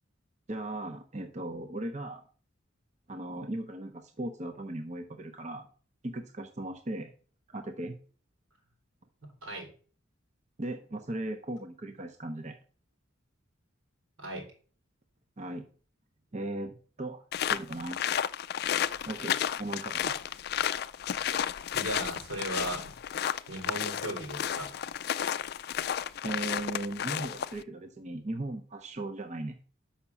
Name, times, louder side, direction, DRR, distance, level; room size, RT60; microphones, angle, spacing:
voice 1, 0.5-2.2 3.1-5.7 6.0-7.1 7.5-8.0 10.6-12.6 15.4-15.7 16.3-17.2 17.5-18.0 19.0-20.2 26.2-29.6, right 1 dB, 35° right, 5 dB, 0.7 m, -37 dB
voice 2, 9.2-9.7 14.2-14.5 21.7-22.9 23.5-24.8, right 1 dB, 85° right, 1 dB, 3.7 m, -37 dB
sound 1, 17.3-27.6, left 9 dB, 50° left, 0.3 m, -32 dB
6.0 x 5.7 x 7.1 m, 0.42 s
head